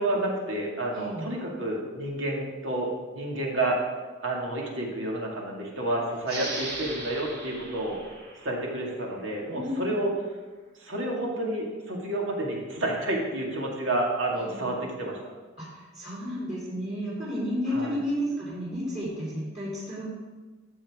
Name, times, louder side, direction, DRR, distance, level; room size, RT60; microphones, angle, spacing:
voice 1, 0.0-3.8 4.2-8.0 8.4-10.1 10.8-15.2 17.7-18.0, right 1 dB, 80° right, -2 dB, 2.3 m, -30 dB
voice 2, 0.9-1.3 9.5-10.0 14.5-14.7 15.6-20.0, equal, 35° right, -8 dB, 3.5 m, -32 dB
sound 1, 6.2-9.5, right 2 dB, 55° right, 2.4 m, -39 dB
13.0 x 7.4 x 3.7 m, 1.3 s
head